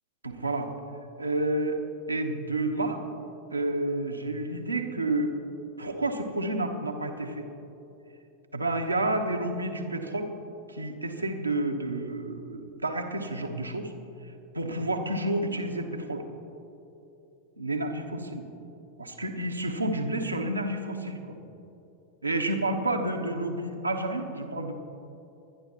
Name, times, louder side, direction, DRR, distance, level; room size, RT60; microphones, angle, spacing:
voice 1, 0.2-0.7 1.2-3.0 3.5-5.4 5.8-7.4 8.5-10.3 10.7-13.9 14.5-16.2 17.6-18.5 19.0-21.4 22.2-24.7, right 2 dB, 85° right, 3 dB, 1.2 m, -30 dB
24.0 x 10.5 x 3.1 m, 2.9 s
figure-of-eight pair, 90°, 0 cm